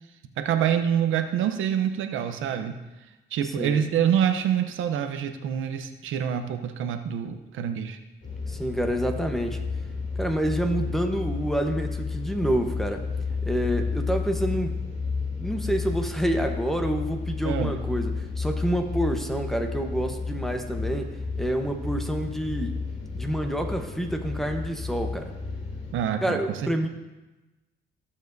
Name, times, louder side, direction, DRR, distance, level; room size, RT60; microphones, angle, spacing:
voice 1, 0.4-2.7 3.3-8.0 17.4-17.8 25.9-26.4, right 9 dB, 80° right, 7 dB, 0.7 m, -26 dB
sound 1, 8.2-25.9, left 4 dB, 40° left, 2.7 m, -32 dB
voice 2, 8.5-9.6 10.2-13.0 13.4-14.7 15.4-22.8 23.1-25.3 26.2-26.9, right 1 dB, ahead, 3 dB, 1.0 m, -28 dB
15.0 x 7.2 x 2.7 m, 1.1 s
cardioid pair, 90°, 20 cm